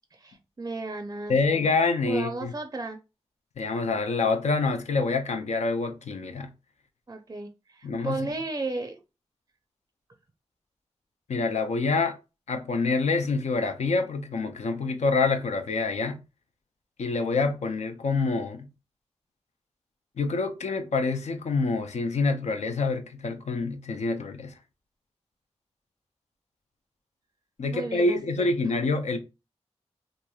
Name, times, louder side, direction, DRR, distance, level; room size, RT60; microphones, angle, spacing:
voice 1, 0.1-1.7 2.1-3.0 7.1-9.0 27.7-28.5, right 2 dB, 30° right, 0.4 m, -34 dB
voice 2, 1.3-2.5 3.6-6.5 7.8-8.2 11.3-12.2 12.5-16.2 17.0-18.7 20.2-24.5 27.6-29.2, left 3 dB, 85° left, 0.5 m, -26 dB
2.9 x 2.5 x 2.3 m
cardioid pair, 50°, 11 cm